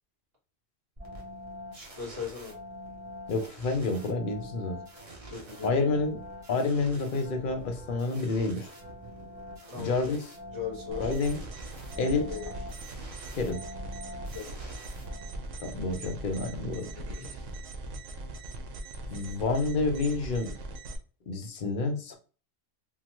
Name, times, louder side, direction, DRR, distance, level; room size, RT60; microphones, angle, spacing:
sound 1, 1.0-15.6, equal, 35° right, 0.8 m, -45 dB
voice 1, 1.7-2.5 5.3-5.8 9.7-10.1 10.5-11.2 12.0-12.5 14.3-14.5 17.1-17.5, left 7 dB, 55° right, -4 dB, 1.7 m, -39 dB
voice 2, 3.3-4.8 5.6-6.2 6.5-8.7 9.7-10.2 11.0-11.4 12.0-12.3 13.3-13.6 15.6-16.9 19.1-20.6 21.3-22.2, left 3 dB, 55° left, 5 dB, 0.6 m, -29 dB
sound 2, 10.9-21.0, right 2 dB, 80° right, 0.9 m, -40 dB
3.1 x 2.1 x 2.9 m, 0.38 s
omnidirectional pair, 1.3 m